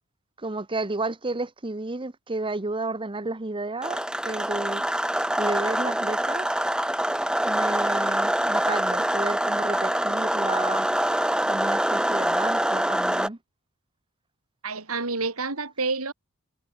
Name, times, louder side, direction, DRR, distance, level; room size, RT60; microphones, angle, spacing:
voice 1, 0.4-4.8 5.4-6.5 7.5-10.9 11.5-13.4, right 2 dB, 25° right, 1.1 m, -32 dB
sound 1, 3.8-13.3, right 1 dB, 5° right, 3.3 m, -25 dB
voice 2, 14.6-16.1, right 3 dB, 80° right, 3.4 m, -28 dB
head